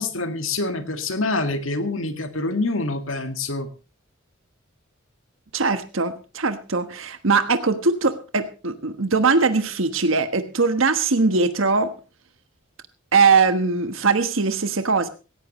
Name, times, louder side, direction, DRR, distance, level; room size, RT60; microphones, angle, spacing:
voice 1, 0.0-3.7, left 2 dB, 75° left, 8 dB, 1.9 m, -26 dB
voice 2, 5.5-11.9 13.1-15.1, right 4 dB, 75° right, 9 dB, 1.3 m, -21 dB
17.5 x 16.5 x 3.1 m, 0.31 s
head